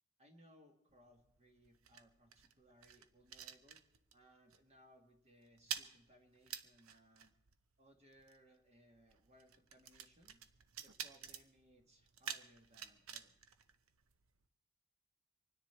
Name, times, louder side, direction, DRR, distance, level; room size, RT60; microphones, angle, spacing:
voice 1, 0.2-3.8 4.1-7.3 7.8-10.4 10.8-13.4, equal, 30° right, 4 dB, 1.4 m, -66 dB
sound 1, 0.9-4.3 4.5-4.8 5.0-14.4, right 8 dB, 70° right, 0.8 m, -50 dB
25.5 x 10.0 x 4.4 m, 0.82 s
head